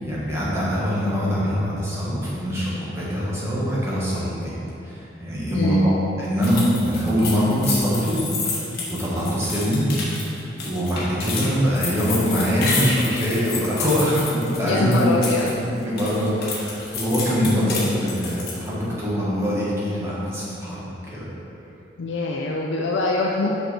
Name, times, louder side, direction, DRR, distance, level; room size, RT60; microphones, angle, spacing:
voice 1, 0.0-4.5 4.8-8.6 8.9-15.1 15.8-20.8 21.1-21.2, equal, 15° right, -8 dB, 1.4 m, -23 dB
voice 2, 5.5-5.9 14.6-15.5 22.0-23.5, left 3 dB, 90° left, -1 dB, 0.5 m, -24 dB
sound 1, 6.4-15.5 15.8-18.7, left 4 dB, 55° left, 1.3 m, -30 dB
5.7 x 5.6 x 4.2 m, 3.0 s
head